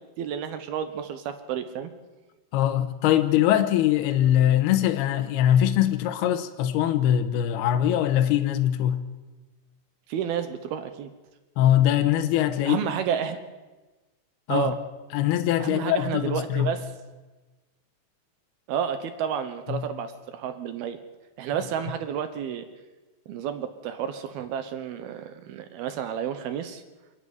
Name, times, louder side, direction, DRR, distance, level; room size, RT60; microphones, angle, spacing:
voice 1, 0.0-1.9 10.1-11.1 12.6-13.4 14.5-14.8 15.6-16.9 18.7-21.0 21.4-22.7 23.3-26.8, right 8 dB, 70° right, 2.4 m, -31 dB
voice 2, 2.5-9.0 11.6-12.8 14.5-14.7 15.1-16.7 19.7-19.8, left 11 dB, 75° left, 2.6 m, -22 dB
28.0 x 9.9 x 9.5 m
omnidirectional pair, 5.6 m